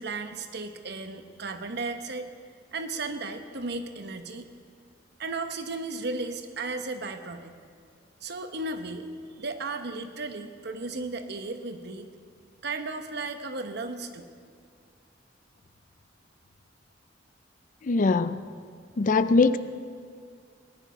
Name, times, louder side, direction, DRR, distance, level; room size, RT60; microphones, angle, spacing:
voice 1, 0.0-2.3 2.7-4.5 5.2-7.6 8.2-9.1 9.4-12.1 12.6-14.3, right 3 dB, 60° right, 7 dB, 1.0 m, -35 dB
voice 2, 17.8-18.4 19.0-19.6, left 3 dB, 45° left, 13 dB, 0.5 m, -21 dB
18.5 x 11.0 x 5.1 m, 2.2 s
head